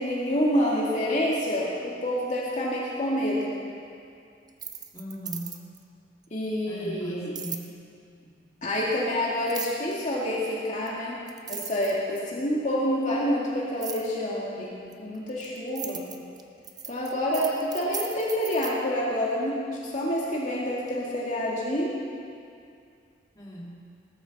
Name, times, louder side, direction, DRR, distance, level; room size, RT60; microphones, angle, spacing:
voice 1, 0.0-3.5 6.3-7.4 8.6-11.2 11.5-16.0 16.9-19.5 19.8-22.0, equal, 40° left, -5 dB, 2.1 m, -27 dB
sound 1, 4.5-5.8 7.3-7.7 9.5-9.9 10.9-11.0 11.3-12.4 13.8-14.1 14.9-18.7, right 7 dB, 20° right, 0.7 m, -37 dB
voice 2, 4.9-5.5 6.7-7.7 23.3-23.8, equal, 20° left, -6 dB, 2.4 m, -38 dB
18.0 x 13.5 x 4.1 m, 2.4 s
head